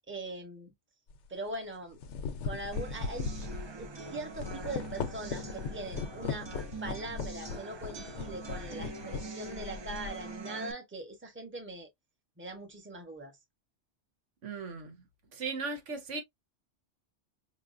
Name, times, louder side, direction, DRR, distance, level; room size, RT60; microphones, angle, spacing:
voice 1, 0.1-0.7 1.3-2.0 2.4-3.3 3.8-6.5 6.8-11.9 12.4-13.4, right 2 dB, 10° right, 0.8 m, -41 dB
sound 1, 1.1-1.3 1.8-10.3, left 5 dB, 75° left, 0.9 m, -39 dB
sound 2, 2.7-10.7, right 4 dB, 45° right, 0.3 m, -44 dB
voice 2, 14.4-15.0 15.3-16.2, right 4 dB, 85° right, 1.3 m, -37 dB
5.5 x 2.1 x 2.4 m
omnidirectional pair, 1.2 m